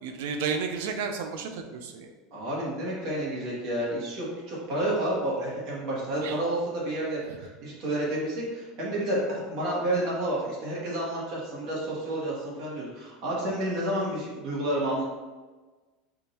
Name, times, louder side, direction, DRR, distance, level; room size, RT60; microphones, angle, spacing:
voice 1, 0.0-2.1 6.2-6.4, right 5 dB, 75° right, 5 dB, 0.5 m, -32 dB
voice 2, 2.3-15.0, right 1 dB, 55° right, -5 dB, 1.5 m, -30 dB
3.7 x 2.6 x 4.3 m, 1.3 s
supercardioid pair, 140°, 0 cm